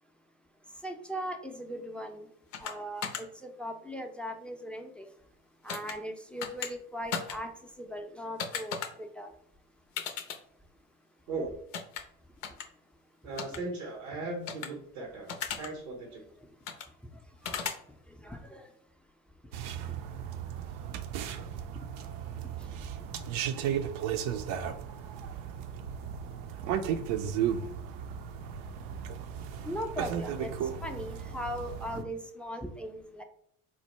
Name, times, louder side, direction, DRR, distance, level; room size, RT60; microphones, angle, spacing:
voice 1, 0.8-2.3 2.6-5.1 5.6-7.5 7.8-9.3 17.4-17.6 18.2-18.6 29.6-30.5 30.8-33.2, equal, 5° left, 5 dB, 0.4 m, -39 dB
sound 1, 2.5-2.7 3.0-3.2 5.7-5.9 6.4-6.7 7.1-7.4 8.4-8.9 10.0-10.4 11.7-12.0 12.4-12.6 13.4-13.6 14.5-14.7 15.3-15.7 16.7-16.9 17.4-17.8, left 7 dB, 85° left, 0.5 m, -35 dB
voice 2, 13.2-16.2, right 3 dB, 85° right, 1 dB, 0.8 m, -38 dB
sound 2, 19.5-32.0, right 8 dB, 65° right, 0.5 m, -35 dB
4.4 x 2.1 x 3.0 m, 0.68 s
hypercardioid pair, 65°, 37 cm